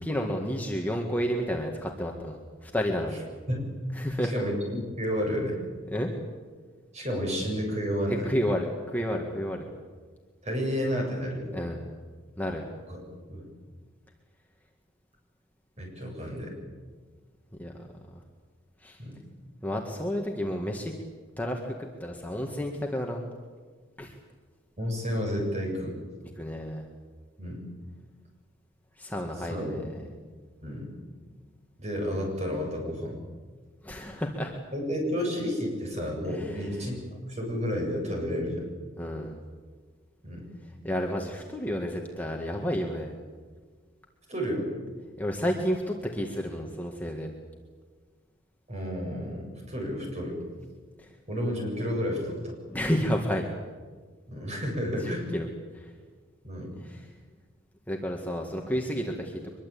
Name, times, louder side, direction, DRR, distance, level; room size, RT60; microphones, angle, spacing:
voice 1, 0.0-3.2 3.9-4.3 5.9-6.1 8.1-9.7 11.5-11.8 12.4-12.6 17.6-17.7 18.8-19.0 19.6-20.9 21.4-21.7 22.0-23.3 24.0-24.1 26.4-26.8 29.0-29.8 33.8-34.5 36.3-36.7 39.0-39.4 40.8-43.1 45.2-47.3 51.0-51.1 52.7-53.5 55.0-55.5 55.7-55.9 56.8-57.1 57.9-59.4, equal, 10° left, 1 dB, 1.9 m, -31 dB
voice 2, 4.3-5.6 6.9-8.3 10.4-11.6 12.9-13.0 13.3-13.4 15.8-16.5 19.0-19.2 24.8-26.0 27.4-27.6 29.5-30.0 30.6-30.9 31.8-33.2 34.7-38.6 40.2-40.5 44.3-44.7 48.7-50.4 51.3-52.5 54.3-55.3 56.4-56.7, equal, 35° right, 0 dB, 7.9 m, -31 dB
24.0 x 22.0 x 8.6 m, 1.5 s
head